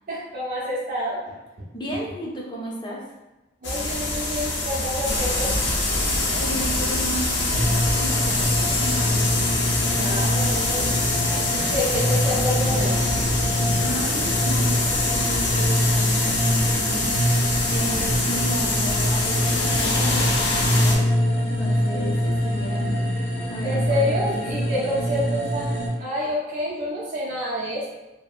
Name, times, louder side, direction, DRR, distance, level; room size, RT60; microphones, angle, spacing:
voice 1, 0.1-1.3 3.6-5.5 9.9-10.9 11.5-13.0 23.6-27.9, equal, 50° right, -8 dB, 0.5 m, -28 dB
voice 2, 1.7-3.0 6.3-9.3 13.8-17.1 17.7-23.1 23.5-24.7, right 1 dB, 25° left, -3 dB, 0.5 m, -34 dB
sound 1, 3.6-21.0, left 2 dB, 90° left, 0.5 m, -24 dB
sound 2, 7.5-25.9, equal, 60° left, 1.1 m, -24 dB
2.7 x 2.1 x 2.4 m, 1.0 s
head